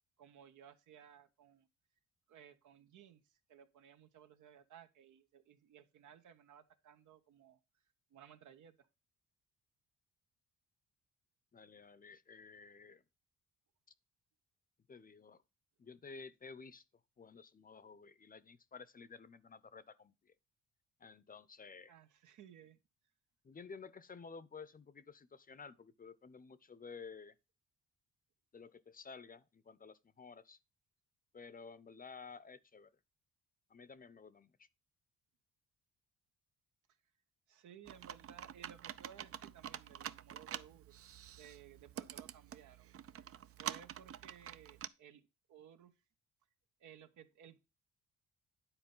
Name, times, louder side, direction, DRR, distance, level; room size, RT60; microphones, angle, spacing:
voice 1, 0.2-1.7 2.3-7.6 8.1-8.9 21.9-22.8 37.5-40.9 41.3-42.9 43.2-43.3 43.6-45.9 46.8-47.6, right 9 dB, 75° right, 1.2 m, -59 dB
voice 2, 11.5-13.0 14.9-15.4 15.8-16.8 17.2-20.3 21.0-21.9 23.4-27.3 28.5-30.6 31.3-32.9 33.7-34.7, left 5 dB, 30° left, 0.7 m, -53 dB
Computer keyboard, 37.9-44.9, right 10 dB, 50° right, 0.6 m, -47 dB
9.8 x 4.2 x 5.5 m
cardioid pair, 90°, 30 cm